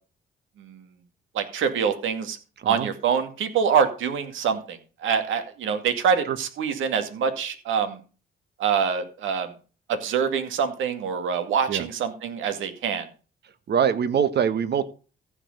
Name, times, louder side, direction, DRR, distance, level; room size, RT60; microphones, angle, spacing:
voice 1, 1.3-2.4 2.6-8.0 8.6-9.5 9.9-13.1, right 7 dB, 80° right, 7 dB, 2.2 m, -25 dB
voice 2, 13.7-14.8, right 8 dB, 55° right, 12 dB, 1.4 m, -23 dB
14.5 x 5.0 x 6.6 m, 0.36 s
cardioid pair, 90°, 20 cm